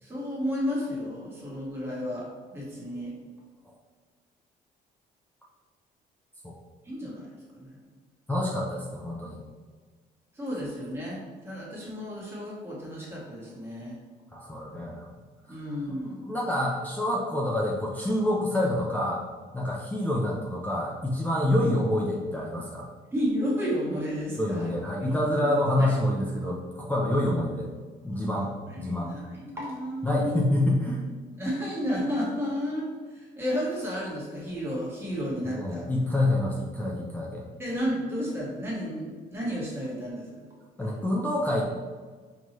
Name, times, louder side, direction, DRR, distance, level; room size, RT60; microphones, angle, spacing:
voice 1, 0.0-3.1 6.8-7.8 10.3-14.0 15.5-16.2 23.1-24.7 25.0-26.0 28.1-30.7 31.4-35.8 37.6-40.5, equal, 15° right, -6 dB, 1.5 m, -32 dB
voice 2, 8.3-9.4 14.3-15.1 15.9-19.2 19.5-22.9 24.4-27.7 28.0-28.5 28.8-29.1 30.0-31.0 35.4-37.4 40.8-41.6, left 1 dB, 10° left, -3 dB, 0.5 m, -27 dB
4.4 x 2.9 x 3.0 m, 1.5 s
cardioid pair, 110°, 17 cm